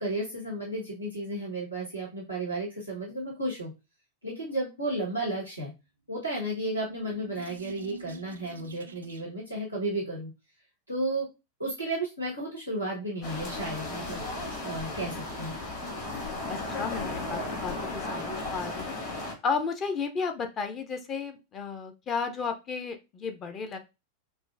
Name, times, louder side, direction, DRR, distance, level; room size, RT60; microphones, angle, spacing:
voice 1, 0.0-3.7 4.2-5.7 6.1-10.3 10.9-11.3 11.6-14.3 14.6-15.5, right 1 dB, 85° left, -4 dB, 1.3 m, -33 dB
sound 1, 6.4-9.5, right 3 dB, 70° right, 0.4 m, -46 dB
sound 2, 13.2-19.3, left 2 dB, 50° left, 2.3 m, -35 dB
voice 2, 16.5-19.0 19.4-23.8, left 5 dB, 30° left, 7 dB, 0.7 m, -33 dB
6.0 x 2.2 x 2.5 m, 0.26 s
figure-of-eight pair, 90°, 0 cm